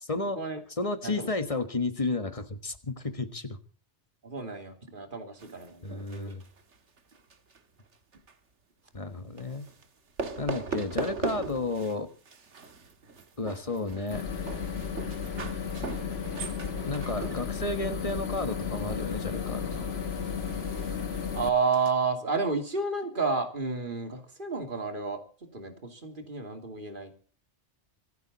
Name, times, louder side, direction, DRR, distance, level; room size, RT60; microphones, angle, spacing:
voice 1, 0.0-0.4 0.7-3.6 5.8-6.4 8.9-9.7 10.4-12.1 13.4-14.3 16.8-19.9, left 3 dB, 30° left, 10 dB, 1.5 m, -32 dB
voice 2, 4.2-6.3 21.3-25.2 25.5-27.1, right 4 dB, 45° right, 6 dB, 2.8 m, -31 dB
sound 1, 5.4-7.6 7.9-8.3 9.4-9.8 10.2-12.0 12.3-21.9, right 4 dB, 85° right, 1.9 m, -40 dB
sound 2, 14.1-21.5, left 6 dB, 65° left, 1.6 m, -34 dB
25.0 x 10.5 x 4.2 m, 0.41 s
omnidirectional pair, 1.2 m